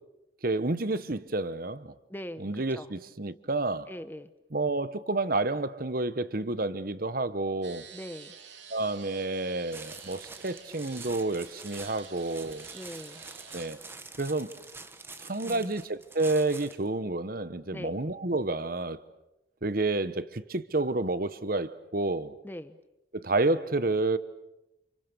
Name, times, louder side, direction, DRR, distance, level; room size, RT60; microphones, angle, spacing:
voice 1, 0.4-1.9 2.4-3.9 4.5-7.9 8.7-12.7 13.5-13.8 14.2-14.5 15.2-19.0 19.6-22.3 23.1-24.2, right 2 dB, 50° right, 1.1 m, -30 dB
voice 2, 2.1-2.9 3.9-4.3 7.9-8.4 12.7-13.2 15.4-15.7 17.7-18.0 22.4-22.8, equal, 10° left, 1.0 m, -41 dB
sound 1, 7.6-13.7, right 7 dB, 65° right, 3.4 m, -50 dB
sound 2, 9.7-16.9, right 3 dB, 10° right, 1.3 m, -46 dB
29.5 x 29.0 x 7.0 m
head